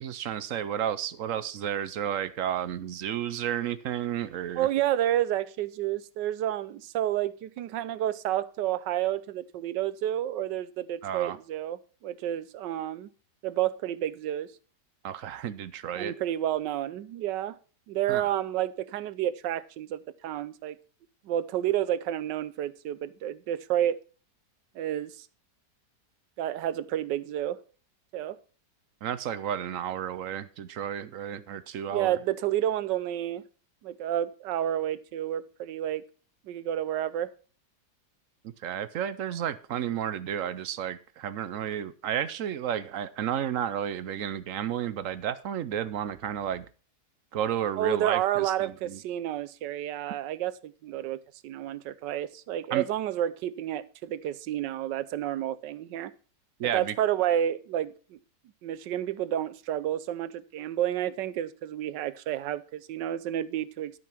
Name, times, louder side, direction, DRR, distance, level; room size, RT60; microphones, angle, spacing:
voice 1, 0.0-4.7 11.0-11.4 15.0-16.1 18.1-18.3 29.0-32.2 38.4-46.6 47.3-49.0 52.7-52.8 56.6-56.9, right 9 dB, 65° right, 0.9 m, -32 dB
voice 2, 4.6-13.1 13.4-14.5 16.0-17.6 17.9-20.8 21.2-24.0 24.7-25.3 26.4-27.6 28.1-28.4 31.9-33.4 33.8-36.0 36.5-37.3 47.8-56.1 56.7-58.2 58.6-64.0, right 12 dB, 85° right, 1.3 m, -30 dB
12.5 x 5.4 x 5.9 m
omnidirectional pair, 1.9 m